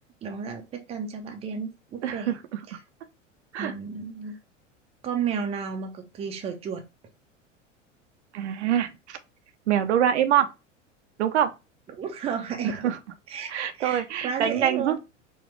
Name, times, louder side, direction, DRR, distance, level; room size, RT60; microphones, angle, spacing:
voice 1, 0.2-2.4 2.7-2.8 3.6-4.4 5.0-6.8 11.9-12.9 13.3-15.0, right 6 dB, 15° right, 0.5 m, -33 dB
voice 2, 2.0-2.6 3.5-3.7 8.3-9.2 9.7-10.5 11.2-11.5 12.6-13.0 13.5-15.0, right 10 dB, 60° right, 0.5 m, -25 dB
4.2 x 2.3 x 3.0 m
figure-of-eight pair, 85°, 38 cm